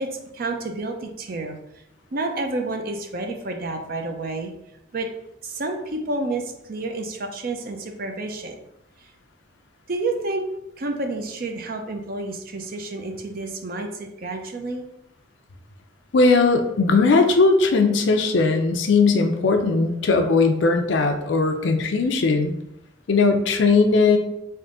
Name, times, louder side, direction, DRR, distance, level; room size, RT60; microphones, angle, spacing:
voice 1, 0.0-1.6 2.1-4.5 4.9-5.1 5.4-8.6 9.9-10.4 10.8-14.8, right 2 dB, 50° right, 4 dB, 0.5 m, -29 dB
voice 2, 16.1-22.5 23.1-24.2, left 3 dB, 70° left, 5 dB, 0.5 m, -18 dB
3.6 x 2.6 x 3.7 m, 0.85 s
head